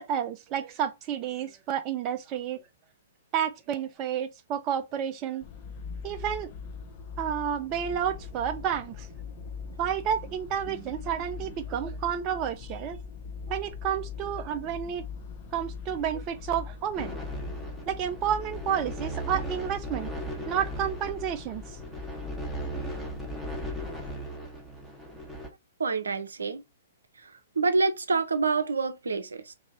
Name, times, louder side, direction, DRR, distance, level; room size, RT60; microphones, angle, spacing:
voice 1, 0.0-2.6 3.3-5.4 6.0-6.5 7.2-9.1 9.8-13.0 13.5-15.0 15.5-17.2 17.9-20.1 20.5-21.6, right 9 dB, 30° right, 0.4 m, -30 dB
sound 1, 5.4-24.1, left 6 dB, 35° left, 0.7 m, -41 dB
sound 2, 16.9-25.5, right 2 dB, ahead, 1.0 m, -38 dB
voice 2, 25.8-26.6 27.6-29.5, right 4 dB, 75° right, 0.6 m, -27 dB
2.8 x 2.6 x 4.3 m
figure-of-eight pair, 115°, 0 cm